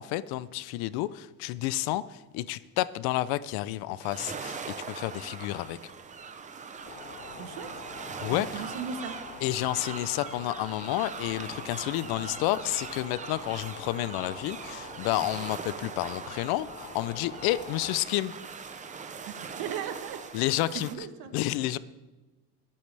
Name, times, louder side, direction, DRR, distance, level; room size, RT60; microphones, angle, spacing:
voice 1, 0.0-5.8 8.2-8.6 9.4-18.3 20.3-20.9 21.3-21.8, left 16 dB, 75° left, 17 dB, 0.6 m, -30 dB
sound 1, 4.0-20.9, right 5 dB, 20° right, 0.6 m, -41 dB
sound 2, 6.8-18.0, left 3 dB, 30° left, 1.7 m, -45 dB
voice 2, 7.3-7.7 8.3-9.2 19.2-21.3, right 7 dB, 70° right, 9 dB, 1.2 m, -38 dB
21.5 x 8.6 x 3.4 m, 1.2 s
cardioid pair, 155°, 38 cm